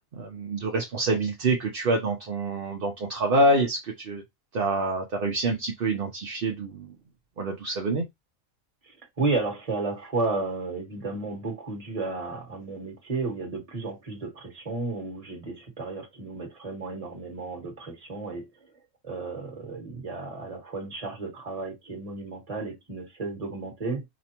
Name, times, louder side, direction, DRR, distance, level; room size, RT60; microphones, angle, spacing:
voice 1, 0.1-4.2 4.5-6.9 7.4-8.1, right 2 dB, 50° right, 0.8 m, -26 dB
voice 2, 8.8-18.7 19.0-24.0, right 3 dB, 30° right, 1.4 m, -33 dB
5.0 x 2.2 x 2.9 m
omnidirectional pair, 1.4 m